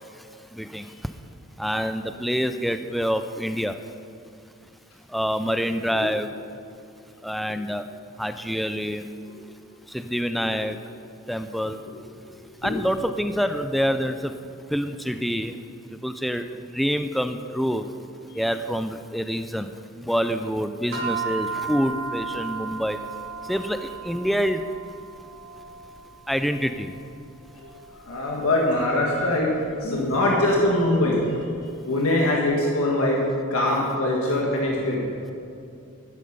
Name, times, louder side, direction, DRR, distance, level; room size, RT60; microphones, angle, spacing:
voice 1, 1.6-3.7 5.1-6.3 7.2-7.8 8.2-9.0 9.9-10.7 11.3-11.8 12.6-14.1 14.7-15.5 16.0-16.4 16.8-17.8 18.4-19.7 20.1-23.0 23.5-23.8 24.1-24.6 26.3-26.9, equal, ahead, 8 dB, 0.3 m, -26 dB
sound 1, 20.9-31.4, right 5 dB, 75° right, 2.4 m, -36 dB
voice 2, 28.1-31.2 31.9-33.2 33.5-35.1, left 1 dB, 90° left, -2 dB, 1.4 m, -22 dB
11.5 x 8.5 x 5.4 m, 2.6 s
head